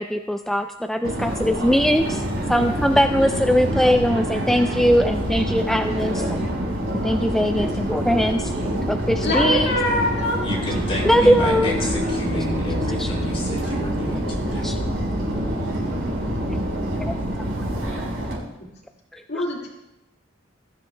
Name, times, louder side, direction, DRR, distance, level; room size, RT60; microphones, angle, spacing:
voice 1, 0.0-2.2 2.5-6.4 7.0-8.5 8.9-9.7 11.1-11.7 13.0-13.1 14.6-14.8 17.0-17.1 19.1-19.4, equal, ahead, 5 dB, 0.3 m, -21 dB
Subway metro underground, 1.0-18.4, equal, 85° right, 4.4 m, -26 dB
voice 2, 9.2-10.4 19.3-19.7, left 1 dB, 55° left, -2 dB, 1.9 m, -23 dB
voice 3, 10.4-14.8, left 1 dB, 30° left, -5 dB, 4.1 m, -30 dB
20.5 x 12.5 x 2.2 m, 0.90 s
head